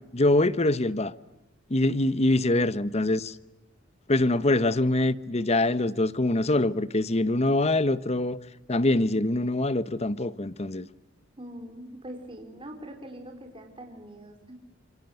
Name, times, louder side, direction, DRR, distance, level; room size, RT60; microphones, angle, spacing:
voice 1, 0.1-1.1 1.7-3.4 4.1-8.4 8.7-10.9, left 2 dB, 35° left, 0.9 m, -24 dB
voice 2, 11.4-14.6, right 1 dB, 25° right, 4.5 m, -43 dB
27.0 x 24.5 x 7.8 m
head